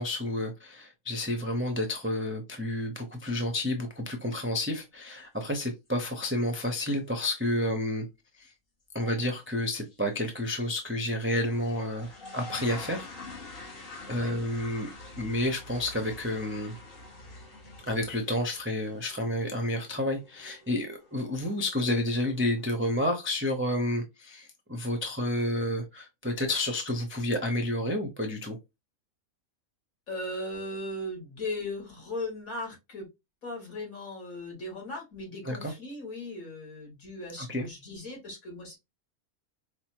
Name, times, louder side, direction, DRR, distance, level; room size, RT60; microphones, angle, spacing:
voice 1, 0.0-8.1 8.4-8.5 8.9-13.1 14.1-14.9 15.2-16.8 17.8-28.6 35.5-35.7 37.4-37.7, left 1 dB, 20° right, 0.3 m, -30 dB
sound 1, 5.1-5.2 5.5-6.0 6.3-6.4 6.9-7.0 7.3-7.4 9.0-9.2 9.7-10.0 10.4-10.5 11.4-22.6, left 2 dB, 45° left, 1.1 m, -47 dB
voice 2, 14.1-14.4 30.1-33.1 33.4-38.8, left 1 dB, 70° left, 2.2 m, -38 dB
4.8 x 2.1 x 2.9 m
omnidirectional pair, 1.5 m